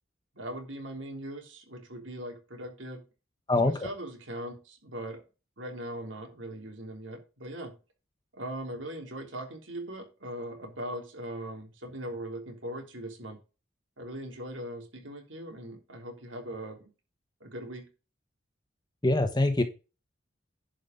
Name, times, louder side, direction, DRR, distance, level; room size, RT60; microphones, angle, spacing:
voice 1, 0.4-3.0 3.7-5.2 5.6-7.8 8.3-13.4 14.0-16.9 17.4-17.9, right 1 dB, 75° right, 3.5 m, -40 dB
voice 2, 3.5-3.9 19.0-19.6, left 2 dB, 20° left, 1.1 m, -24 dB
11.0 x 5.3 x 5.3 m
head